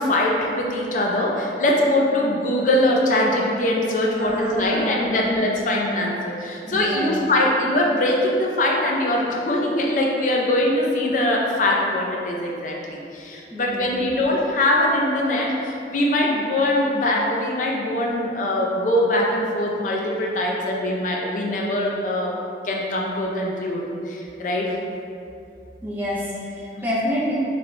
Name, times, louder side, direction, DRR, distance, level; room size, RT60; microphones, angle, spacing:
voice 1, 0.0-22.3 22.6-24.8 26.8-26.9, left 1 dB, 45° left, -2 dB, 0.5 m, -22 dB
voice 2, 4.0-5.3 6.7-7.2 13.5-14.1 25.8-27.3, equal, 10° right, -8 dB, 0.6 m, -28 dB
3.3 x 2.2 x 3.9 m, 2.6 s
head